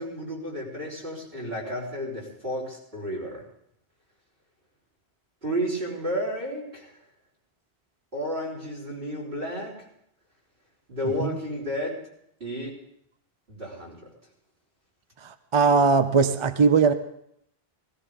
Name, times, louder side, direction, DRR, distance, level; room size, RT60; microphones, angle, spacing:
voice 1, 0.0-3.4 5.4-6.9 8.1-9.7 10.9-12.0 12.4-12.8 13.5-14.0, equal, 60° right, -6 dB, 4.3 m, -32 dB
voice 2, 15.5-16.9, right 5 dB, 35° right, 10 dB, 0.5 m, -19 dB
17.0 x 16.5 x 3.6 m, 0.73 s
omnidirectional pair, 1.1 m